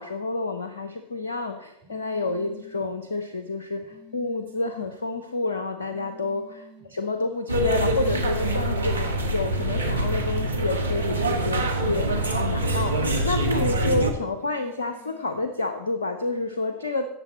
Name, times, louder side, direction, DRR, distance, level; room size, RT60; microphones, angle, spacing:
voice 1, 0.0-6.6 6.9-17.1, left 3 dB, 85° left, 9 dB, 0.8 m, -29 dB
sound 1, 1.8-2.9 3.8-4.9 5.8-6.9 8.4-9.4 10.4-11.4 12.4-13.4 14.4-15.4, left 3 dB, 55° right, 4.5 m, -51 dB
sound 2, 7.5-14.1, right 1 dB, 90° right, 1.3 m, -25 dB
17.0 x 6.9 x 4.3 m, 0.83 s
figure-of-eight pair, 85°, 0 cm